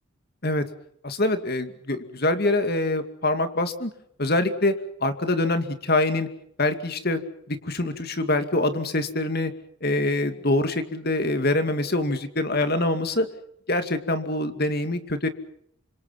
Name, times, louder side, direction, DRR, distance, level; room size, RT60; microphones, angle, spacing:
voice 1, 1.0-3.9 4.2-6.3 6.6-7.2 7.5-9.5 9.8-13.3 13.7-15.3, left 2 dB, 45° left, 9 dB, 2.4 m, -24 dB
29.5 x 26.5 x 6.0 m, 0.71 s
head